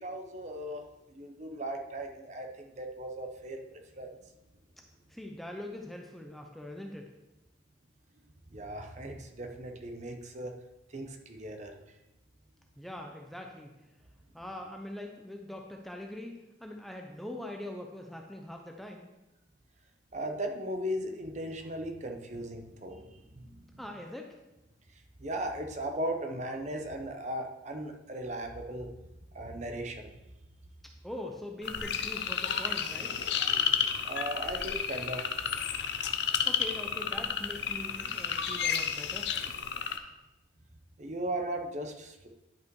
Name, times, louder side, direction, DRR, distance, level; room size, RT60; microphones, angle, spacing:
voice 1, 0.0-0.8 1.1-3.6 3.9-4.1 8.5-10.5 10.9-11.8 20.1-23.8 25.2-28.9 29.3-30.1 34.0-35.4 41.0-42.3, right 1 dB, 40° right, 4 dB, 0.9 m, -37 dB
voice 2, 5.1-7.1 12.8-13.7 14.3-16.3 16.6-19.1 23.8-24.4 31.0-33.2 36.5-39.3 39.9-40.1, left 1 dB, ahead, 2 dB, 0.6 m, -42 dB
sound 1, 31.6-40.0, left 7 dB, 65° left, 0.7 m, -31 dB
10.5 x 5.7 x 4.7 m, 0.99 s
head